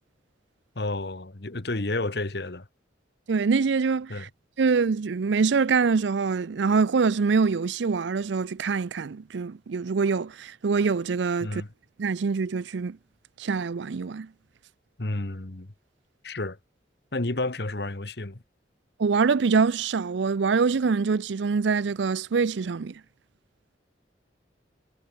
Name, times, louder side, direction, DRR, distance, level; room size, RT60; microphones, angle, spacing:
voice 1, 0.7-2.7 4.1-4.3 11.4-11.7 15.0-15.7 16.2-16.6 17.1-18.4, left 2 dB, 65° left, 1.4 m, -31 dB
voice 2, 3.3-4.3 4.6-11.6 12.0-13.0 13.4-14.3 19.0-22.9, right 5 dB, 80° right, 0.5 m, -24 dB
head